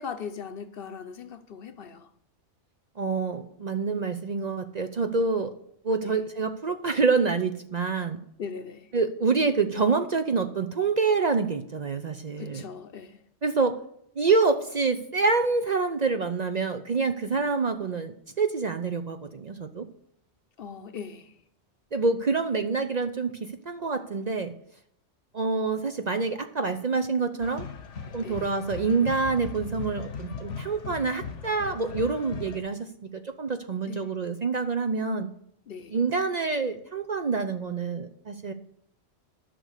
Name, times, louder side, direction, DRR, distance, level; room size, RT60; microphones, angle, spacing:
voice 1, 0.0-2.1 6.0-6.2 8.4-8.9 12.4-13.2 20.6-21.3 28.2-28.5 33.8-34.1 35.7-36.0, left 6 dB, 60° left, 0.9 m, -39 dB
voice 2, 3.0-5.5 5.8-8.2 8.9-12.7 13.4-13.8 14.2-19.8 21.9-24.5 25.3-27.7 28.1-35.3 35.9-38.5, right 4 dB, 45° right, 0.6 m, -27 dB
sound 1, 27.4-32.6, left 5 dB, 85° left, 1.3 m, -38 dB
11.0 x 6.5 x 6.5 m
omnidirectional pair, 1.2 m